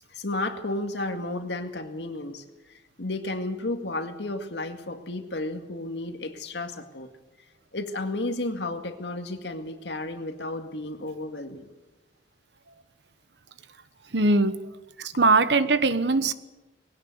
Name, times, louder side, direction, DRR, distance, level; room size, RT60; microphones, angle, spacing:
voice 1, 0.1-2.4 3.0-7.1 7.7-11.7, left 2 dB, 75° left, 6 dB, 2.1 m, -32 dB
voice 2, 14.1-14.6 15.0-16.3, right 3 dB, 75° right, 13 dB, 1.2 m, -21 dB
20.5 x 17.5 x 8.0 m, 1.1 s
head